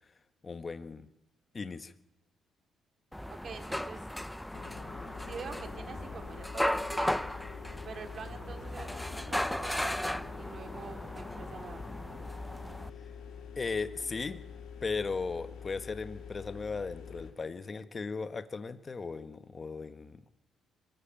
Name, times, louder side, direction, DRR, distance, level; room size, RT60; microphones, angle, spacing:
voice 1, 0.4-1.1 1.5-1.9 13.6-14.4 14.8-20.3, left 4 dB, 35° left, 10 dB, 1.3 m, -37 dB
sound 1, 3.1-12.9, left 1 dB, 5° left, 0.8 m, -36 dB
voice 2, 3.3-4.1 5.0-7.2 7.8-11.8, right 5 dB, 50° right, 5 dB, 2.8 m, -45 dB
sound 2, 4.5-17.3, left 6 dB, 90° left, 4.6 m, -46 dB
22.5 x 13.5 x 9.1 m, 0.90 s
cardioid pair, 90°, 0 cm